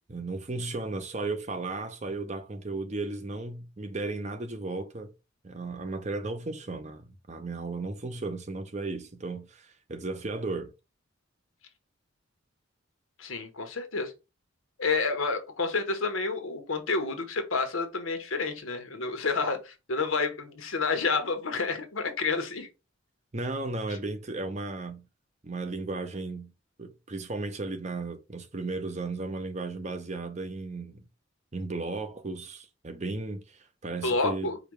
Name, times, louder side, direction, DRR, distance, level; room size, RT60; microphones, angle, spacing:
voice 1, 0.1-5.1 5.4-10.7 23.3-25.1 25.4-26.5 26.8-31.0 31.5-34.5, right 3 dB, 35° right, 0.6 m, -35 dB
voice 2, 13.2-14.1 14.8-22.7 34.0-34.6, left 4 dB, 80° left, 1.0 m, -29 dB
4.9 x 2.3 x 4.7 m
head